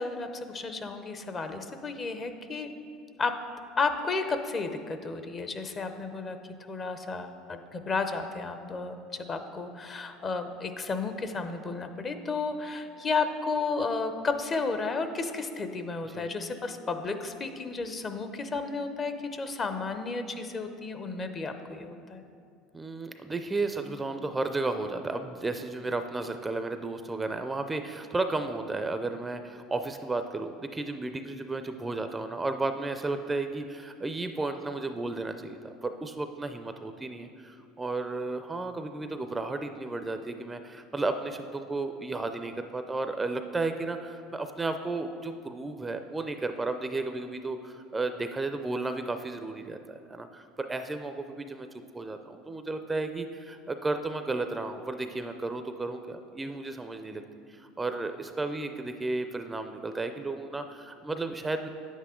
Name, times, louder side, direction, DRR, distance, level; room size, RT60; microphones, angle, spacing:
voice 1, 0.0-2.8 3.2-3.4 3.8-6.4 6.7-22.2, left 4 dB, 30° left, 8 dB, 0.7 m, -32 dB
voice 2, 22.7-51.7 51.9-57.2 57.5-61.7, right 3 dB, 15° right, 8 dB, 0.4 m, -33 dB
9.6 x 8.2 x 3.7 m, 2.3 s
supercardioid pair, 105°, 0 cm